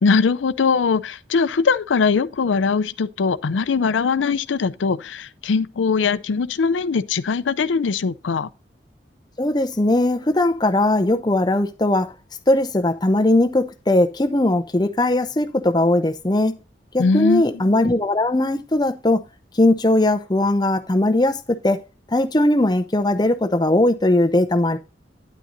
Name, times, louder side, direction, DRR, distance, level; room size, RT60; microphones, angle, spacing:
voice 1, 0.0-8.5 17.0-17.7, left 5 dB, 90° left, 0.5 m, -21 dB
voice 2, 9.4-12.1 12.5-16.6 16.9-19.2 19.6-21.8 22.1-24.8, left 1 dB, 20° left, 0.6 m, -19 dB
9.8 x 9.1 x 2.6 m
head